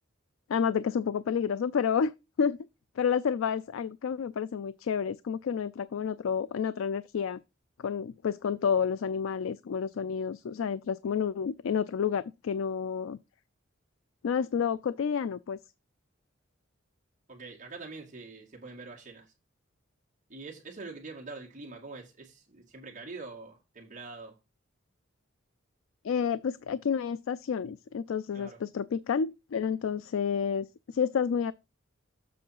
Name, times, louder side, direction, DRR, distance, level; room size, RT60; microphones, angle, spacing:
voice 1, 0.5-2.1 2.4-2.7 3.0-7.4 7.8-13.2 14.2-15.6 26.0-31.5, left 7 dB, 85° left, 0.4 m, -30 dB
voice 2, 17.3-19.3 20.3-24.4 28.3-28.6, right 3 dB, 40° right, 2.0 m, -44 dB
7.7 x 3.7 x 5.7 m
head